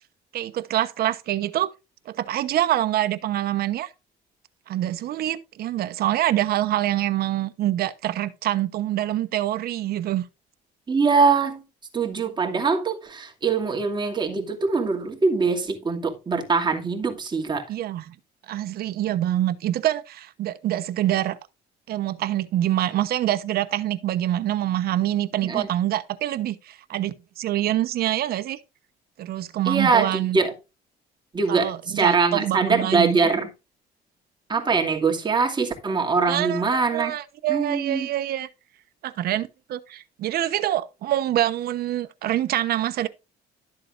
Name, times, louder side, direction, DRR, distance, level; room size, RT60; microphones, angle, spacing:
voice 1, 0.3-1.7 2.1-3.9 4.7-10.2 17.7-18.1 18.5-21.4 21.9-28.6 29.2-30.4 31.5-33.2 36.3-38.5 39.0-43.1, right 13 dB, 65° right, 1.0 m, -25 dB
voice 2, 10.9-11.6 11.9-17.7 25.4-25.7 29.6-30.5 31.3-33.5 34.5-37.1 37.5-38.1, right 4 dB, 25° right, 2.5 m, -23 dB
12.5 x 7.6 x 2.6 m
cardioid pair, 110°, 17 cm